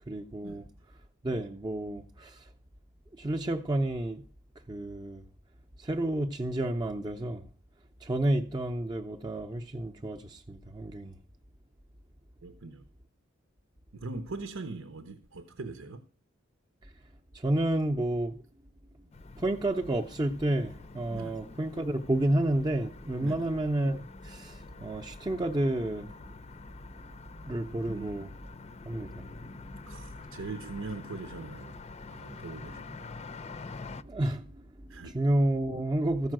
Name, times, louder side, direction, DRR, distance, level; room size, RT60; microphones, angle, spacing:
voice 1, 0.1-0.6 1.2-2.5 3.1-4.2 4.7-5.2 5.8-7.4 8.0-11.1 17.3-18.4 19.4-26.1 27.5-28.3 28.8-29.3 34.0-34.6 34.9-36.3, right 1 dB, 20° right, 0.6 m, -30 dB
voice 2, 12.4-12.9 13.9-16.1 21.1-21.4 23.2-23.5 27.9-28.3 29.9-33.1 34.9-35.1, right 3 dB, 90° right, 0.9 m, -41 dB
sound 1, 19.1-34.0, left 3 dB, 30° left, 0.5 m, -46 dB
14.5 x 5.6 x 7.5 m
head